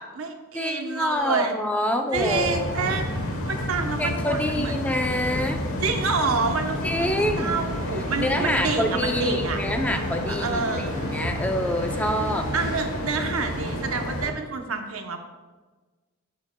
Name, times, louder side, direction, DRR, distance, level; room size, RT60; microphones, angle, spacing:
voice 1, 0.0-1.5 2.1-4.8 5.8-9.6 10.3-10.9 12.5-15.2, right 4 dB, 75° right, 4 dB, 1.0 m, -28 dB
voice 2, 0.5-3.2 4.0-5.6 6.8-7.6 8.2-12.5, left 1 dB, 5° left, 4 dB, 0.5 m, -27 dB
sound 1, 2.1-14.3, left 1 dB, 80° left, 1.2 m, -30 dB
sound 2, 6.9-13.9, right 2 dB, 50° right, 2.7 m, -42 dB
12.0 x 8.1 x 2.3 m, 1.3 s
head